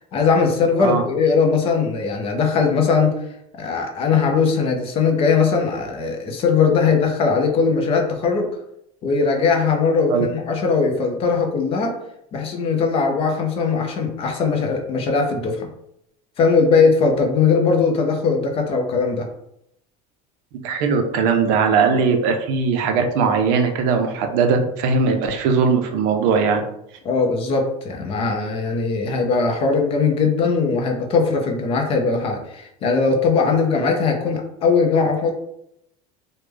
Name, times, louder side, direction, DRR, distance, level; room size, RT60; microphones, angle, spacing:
voice 1, 0.1-3.1 3.6-8.5 9.0-11.9 12.3-15.7 16.4-19.3 27.0-35.3, left 5 dB, 30° left, 2 dB, 0.5 m, -19 dB
voice 2, 20.6-26.6, right 5 dB, 65° right, 5 dB, 0.5 m, -19 dB
3.2 x 2.1 x 3.3 m, 0.76 s
cardioid pair, 170°, 19 cm